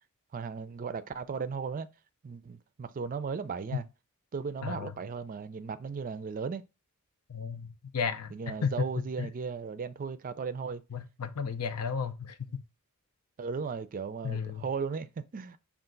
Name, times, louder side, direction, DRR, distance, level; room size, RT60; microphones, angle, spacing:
voice 1, 0.3-1.9 2.2-3.8 4.3-6.6 8.3-10.8 13.4-15.6, right 5 dB, 40° right, 0.4 m, -36 dB
voice 2, 4.6-4.9 7.3-9.3 10.9-12.6 14.2-14.7, left 6 dB, 85° left, 0.5 m, -34 dB
5.6 x 2.4 x 3.8 m
head